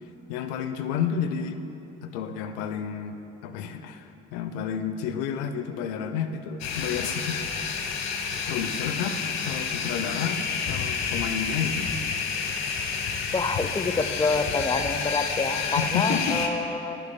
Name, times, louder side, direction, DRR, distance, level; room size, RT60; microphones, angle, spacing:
voice 1, 0.3-1.6 2.0-3.2 3.4-7.4 8.5-11.9 15.8-16.4, left 7 dB, 75° left, 9 dB, 0.6 m, -30 dB
sound 1, 6.6-16.5, left 6 dB, 55° left, 0.9 m, -29 dB
voice 2, 13.3-17.0, left 3 dB, 15° left, 8 dB, 0.6 m, -27 dB
11.5 x 10.0 x 2.2 m, 3.0 s
hypercardioid pair, 65°, 33 cm